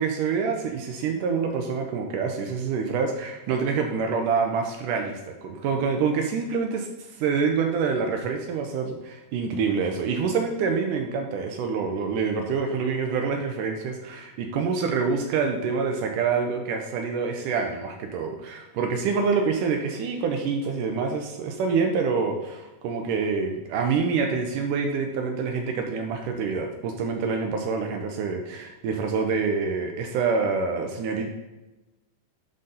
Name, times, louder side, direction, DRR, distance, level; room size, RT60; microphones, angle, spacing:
voice 1, 0.0-6.9 7.2-31.3, right 5 dB, 75° right, 3 dB, 2.1 m, -26 dB
11.5 x 4.0 x 3.9 m, 1.1 s
omnidirectional pair, 4.1 m